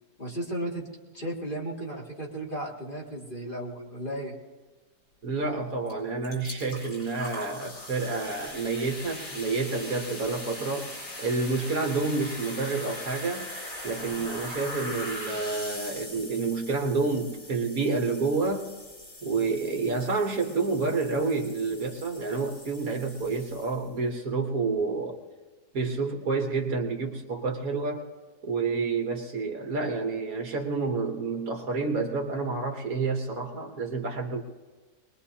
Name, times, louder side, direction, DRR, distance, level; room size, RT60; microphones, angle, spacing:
voice 1, 0.2-0.9 1.1-4.3, right 1 dB, 30° left, -4 dB, 2.6 m, -34 dB
voice 2, 5.2-10.9 11.2-13.5 13.8-18.7 19.2-25.2 25.7-28.1 28.4-34.4, right 4 dB, 60° right, 3 dB, 1.6 m, -29 dB
sound 1, 5.9-6.0 6.2-24.0, left 1 dB, 80° left, 4.8 m, -41 dB
22.5 x 21.0 x 2.8 m, 1.4 s
omnidirectional pair, 1.8 m